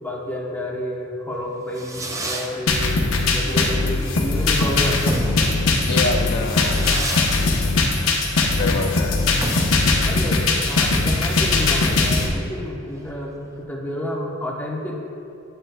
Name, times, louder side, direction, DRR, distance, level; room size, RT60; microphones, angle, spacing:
voice 1, 0.0-5.0 10.0-15.0, equal, 10° left, -2 dB, 0.9 m, -30 dB
Fireworks, 1.4-13.6, right 1 dB, 15° right, 0.5 m, -33 dB
sound 1, 2.7-12.3, left 3 dB, 85° left, 0.8 m, -20 dB
voice 2, 5.9-7.1 8.5-9.2, left 3 dB, 55° left, 3 dB, 0.4 m, -26 dB
9.9 x 7.8 x 2.2 m, 2.7 s
head